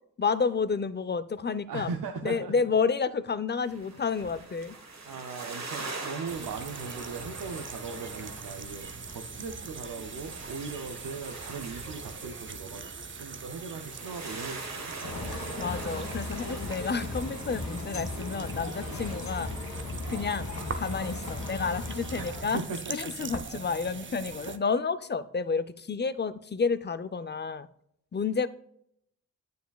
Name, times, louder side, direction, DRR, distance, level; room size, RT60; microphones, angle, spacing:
voice 1, 0.2-1.9 2.2-4.8 15.6-19.5 20.1-20.5 20.7-22.6 22.9-27.7 28.1-28.5, left 5 dB, 35° left, 15 dB, 0.5 m, -30 dB
voice 2, 1.7-2.5 4.3-4.5 5.0-15.2 20.1-20.3 22.2-23.8 24.4-24.6, right 5 dB, 90° right, 4 dB, 0.6 m, -39 dB
sound 1, 3.6-19.2, right 3 dB, 55° right, 1.4 m, -43 dB
sound 2, 6.3-24.6, right 5 dB, 35° right, 0.6 m, -42 dB
sound 3, 15.0-22.4, left 3 dB, 60° left, 1.4 m, -37 dB
9.2 x 6.9 x 2.3 m, 0.70 s
cardioid pair, 40°, 32 cm